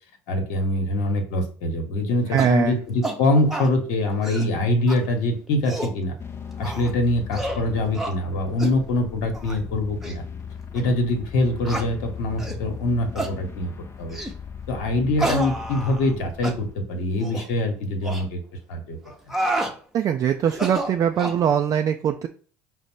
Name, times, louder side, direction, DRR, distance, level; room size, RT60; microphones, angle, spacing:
voice 1, 0.3-6.1 6.6-10.2 10.7-13.7 14.0-14.2 14.7-18.4 18.7-19.0, left 1 dB, 70° left, 5 dB, 1.0 m, -24 dB
voice 2, 2.3-2.7 19.9-22.3, right 9 dB, 40° right, 5 dB, 0.4 m, -22 dB
sound 1, 2.4-2.6 3.0-3.2 3.5-3.7 4.1-4.5 4.9-5.0 5.5-6.0 6.6-6.9 7.3-7.6 8.0-8.2 8.6-8.8 9.3-9.6 10.0-10.2 10.8-10.9 11.7-11.9 12.4-12.6 13.2-13.4 14.1-14.4 15.2-16.1 16.4-16.6 17.2-17.5 18.0-18.2 19.1-19.8 20.5-21.4, right 1 dB, 5° right, 0.8 m, -29 dB
sound 2, 6.2-16.8, left 6 dB, 30° left, 0.5 m, -38 dB
5.0 x 2.1 x 4.4 m, 0.42 s
hypercardioid pair, 70°, 8 cm